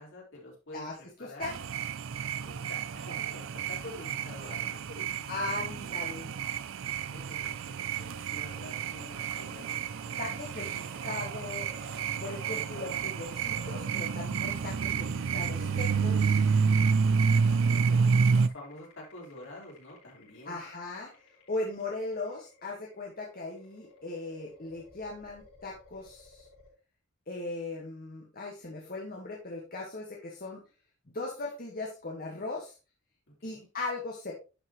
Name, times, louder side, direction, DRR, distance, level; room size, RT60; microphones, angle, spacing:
voice 1, 0.0-1.7 2.4-5.1 5.4-6.3 7.1-11.1 17.0-20.6 33.3-33.7, left 1 dB, 55° left, -3 dB, 4.1 m, -48 dB
voice 2, 1.2-1.5 5.3-6.3 10.2-11.7 12.2-16.5 20.4-21.2 21.5-26.5 27.3-30.6 31.1-32.8 33.4-34.3, left 2 dB, 40° left, -1 dB, 1.6 m, -38 dB
sound 1, 1.4-18.5, right 5 dB, 60° right, 0.4 m, -29 dB
sound 2, 6.9-26.7, left 2 dB, 85° left, 5.0 m, -54 dB
11.0 x 5.8 x 3.1 m, 0.31 s
head